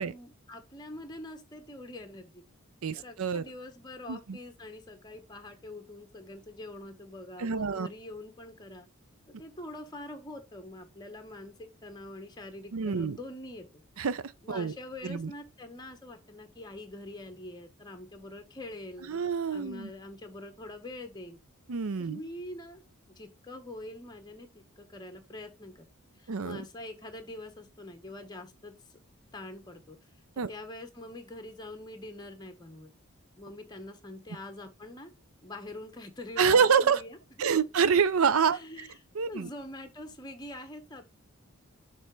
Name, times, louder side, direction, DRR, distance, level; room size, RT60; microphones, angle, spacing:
voice 1, 0.0-2.4 2.9-8.9 9.3-13.7 14.4-19.2 19.5-21.4 22.0-22.8 23.2-25.7 26.2-28.7 29.3-30.0 30.3-32.9 33.4-35.1 35.4-37.5 38.5-39.0 39.3-41.1, left 1 dB, 20° left, 1.1 m, -44 dB
voice 2, 2.8-3.4 4.1-4.4 7.4-7.9 12.7-13.2 14.0-14.7 15.0-15.3 19.1-19.9 21.7-22.2 26.3-26.6 30.4-30.5 36.4-37.0 37.4-38.9 39.2-39.5, right 6 dB, 75° right, 0.5 m, -27 dB
6.6 x 3.4 x 4.6 m
head